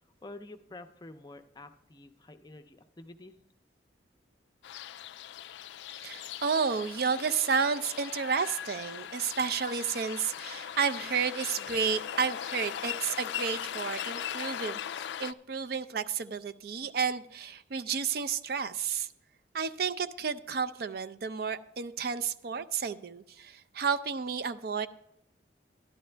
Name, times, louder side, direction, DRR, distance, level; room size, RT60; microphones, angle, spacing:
voice 1, 0.2-3.3, left 2 dB, 20° left, 0.5 m, -48 dB
sound 1, 4.6-15.3, left 10 dB, 75° left, 0.3 m, -39 dB
voice 2, 5.9-14.8 15.2-19.1 19.5-24.9, right 6 dB, 55° right, 0.4 m, -31 dB
12.5 x 11.0 x 3.3 m
head